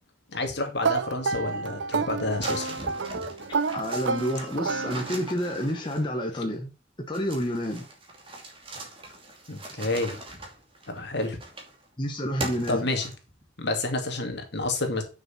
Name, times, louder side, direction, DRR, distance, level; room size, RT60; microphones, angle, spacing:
voice 1, 0.3-2.8 9.5-10.2 10.9-11.4 12.7-13.1 13.6-15.0, left 2 dB, 60° left, 2.4 m, -29 dB
sound 1, 0.8-5.4, right 4 dB, 75° right, 0.6 m, -29 dB
sound 2, 2.4-6.3 7.1-11.8 12.4-13.4, right 2 dB, 30° right, 2.4 m, -40 dB
voice 2, 3.7-6.7 7.1-7.9 12.0-12.9, equal, 25° left, 1.3 m, -29 dB
7.1 x 6.4 x 5.7 m
head